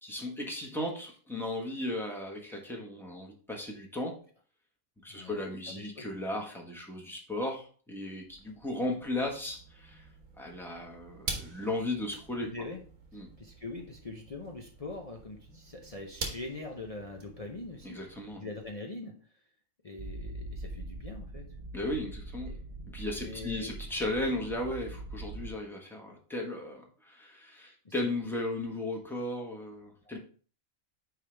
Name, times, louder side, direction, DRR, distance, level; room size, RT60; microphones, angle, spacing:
voice 1, 0.0-4.2 5.0-10.0 10.4-12.5 13.1-13.3 17.8-18.5 21.7-22.5 22.9-30.2, left 1 dB, ahead, -1 dB, 1.2 m, -36 dB
voice 2, 5.1-6.1 12.4-12.8 13.4-18.0 18.3-19.1 19.8-21.5 22.5-22.6 23.2-23.7 27.8-28.1 30.0-30.2, left 3 dB, 35° left, 1 dB, 0.7 m, -43 dB
sound 1, 8.2-18.7, right 3 dB, 75° right, 1.7 m, -46 dB
sound 2, 20.0-25.5, right 2 dB, 40° right, 0.5 m, -42 dB
9.4 x 3.5 x 3.3 m, 0.42 s
omnidirectional pair, 1.4 m